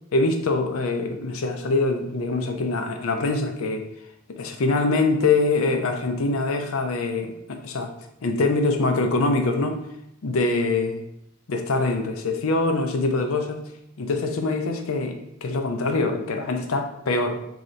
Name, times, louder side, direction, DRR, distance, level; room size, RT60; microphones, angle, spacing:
voice 1, 0.1-3.9 4.3-7.9 8.2-9.8 10.2-11.0 11.5-13.7 14.0-17.4, left 3 dB, 70° left, 4 dB, 0.5 m, -24 dB
3.2 x 2.9 x 3.8 m, 0.77 s
head